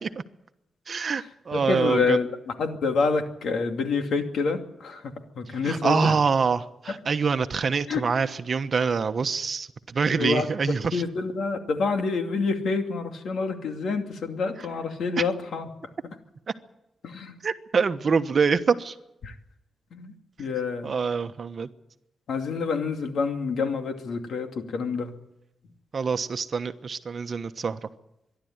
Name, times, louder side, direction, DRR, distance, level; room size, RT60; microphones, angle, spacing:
voice 1, 0.9-2.2 5.6-11.0 17.4-18.9 20.8-21.7 25.9-27.8, right 5 dB, 50° right, 9 dB, 1.2 m, -25 dB
voice 2, 1.5-6.2 7.9-8.0 10.1-15.7 17.0-17.3 19.2-19.3 19.9-20.1 20.4-20.9 22.3-25.1, left 4 dB, 80° left, 5 dB, 2.5 m, -27 dB
26.0 x 11.5 x 9.6 m, 0.89 s
cardioid pair, 85°, 0 cm